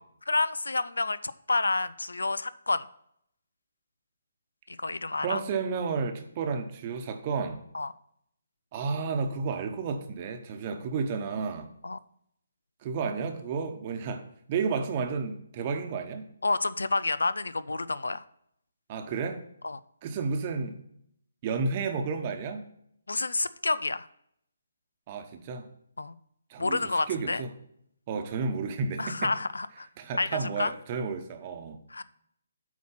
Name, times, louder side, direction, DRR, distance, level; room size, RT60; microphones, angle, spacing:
voice 1, 0.3-2.9 4.7-5.4 7.7-7.9 11.8-12.0 16.4-18.2 19.6-19.8 23.1-24.1 26.0-26.2 26.6-27.4 29.0-29.9 30.2-30.7 31.9-32.0, left 3 dB, 80° left, 16 dB, 0.4 m, -29 dB
voice 2, 5.2-7.6 8.7-11.7 12.8-14.2 14.5-16.3 18.9-19.4 20.0-20.8 21.4-22.6 25.1-25.7 26.5-26.8 27.1-27.5 28.1-29.3 30.0-31.8, right 5 dB, 35° right, 6 dB, 1.0 m, -31 dB
8.2 x 4.4 x 5.7 m, 0.71 s
figure-of-eight pair, 145°, 0 cm